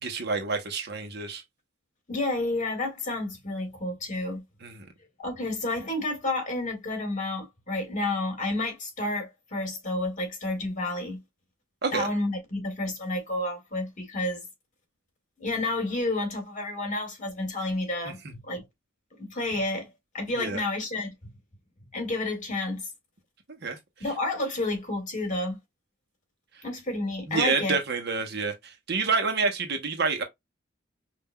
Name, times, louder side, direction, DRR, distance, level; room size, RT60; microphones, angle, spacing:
voice 1, 0.0-1.4 4.6-4.9 11.8-12.1 20.4-20.6 23.6-23.8 27.3-30.2, right 4 dB, 55° right, 1.0 m, -28 dB
voice 2, 2.1-4.4 5.2-11.2 11.9-14.4 15.4-18.6 19.2-19.9 20.1-21.1 21.9-22.9 24.0-25.6 26.6-27.8, left 2 dB, 40° left, 1.9 m, -30 dB
5.5 x 2.6 x 2.2 m
head